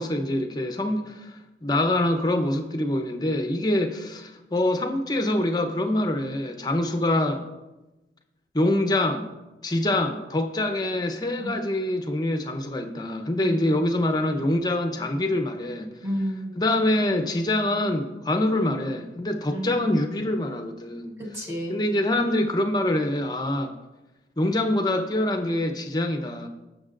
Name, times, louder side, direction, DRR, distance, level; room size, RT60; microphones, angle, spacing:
voice 1, 0.0-7.5 8.5-9.3 9.6-15.9 16.6-21.2 21.7-23.7 24.4-26.5, left 1 dB, 25° left, 0.8 m, -25 dB
voice 2, 13.4-13.9 16.0-16.6 19.5-19.9 21.2-21.8, equal, 15° right, 1.2 m, -32 dB
17.5 x 6.6 x 2.5 m
head